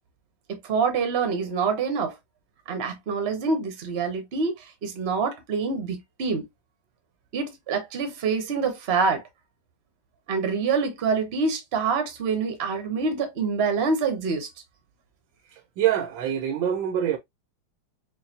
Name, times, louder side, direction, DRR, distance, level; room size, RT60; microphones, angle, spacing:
voice 1, 0.5-2.1 2.7-6.4 7.3-9.2 10.3-14.5, right 5 dB, 40° right, 1.0 m, -26 dB
voice 2, 15.5-17.2, right 10 dB, 85° right, 1.5 m, -25 dB
4.7 x 2.6 x 2.8 m
omnidirectional pair, 2.1 m